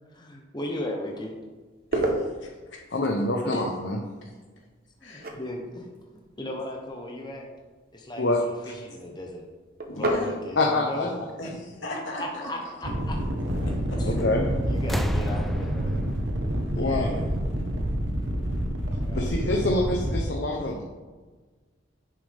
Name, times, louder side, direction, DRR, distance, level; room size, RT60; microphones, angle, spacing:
voice 1, 0.1-1.3 3.5-3.6 5.0-5.9 6.4-7.5 7.9-9.4 9.9-11.1 12.1-13.2 14.0-14.1 14.7-16.0 16.8-17.3 19.0-19.8, left 1 dB, 20° left, 0 dB, 1.1 m, -36 dB
sound 1, 1.0-16.2, right 2 dB, 50° right, 1.2 m, -37 dB
voice 2, 1.9-2.8 4.2-4.3 5.0-5.3 9.9-10.4 11.4-12.7 13.7-14.0, left 1 dB, 85° left, -2 dB, 2.3 m, -37 dB
voice 3, 2.9-4.0 8.2-8.7 10.6-11.1 14.0-14.4 16.8-17.1 19.1-20.8, left 2 dB, 60° left, 0 dB, 1.0 m, -26 dB
sound 2, 12.8-20.2, equal, 80° right, 1.4 m, -28 dB
sound 3, 14.2-14.5 14.8-17.5 18.7-18.8, equal, ahead, 0.4 m, -33 dB
10.5 x 6.7 x 3.6 m, 1.3 s
head